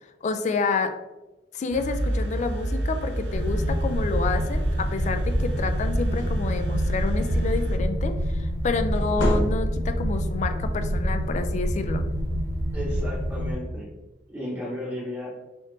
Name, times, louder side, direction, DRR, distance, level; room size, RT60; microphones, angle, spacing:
voice 1, 0.2-0.9 1.5-12.0, left 4 dB, 40° left, 8 dB, 0.3 m, -29 dB
sound 1, 1.7-7.8, right 1 dB, 70° right, 0.4 m, -29 dB
sound 2, 3.3-13.5, equal, 30° right, 1.1 m, -27 dB
sound 3, 6.1-7.1 8.8-10.0, equal, 85° left, 0.8 m, -28 dB
voice 2, 12.7-13.9 14.3-15.3, left 1 dB, 10° right, -9 dB, 0.9 m, -34 dB
3.9 x 3.5 x 2.6 m, 1.1 s
head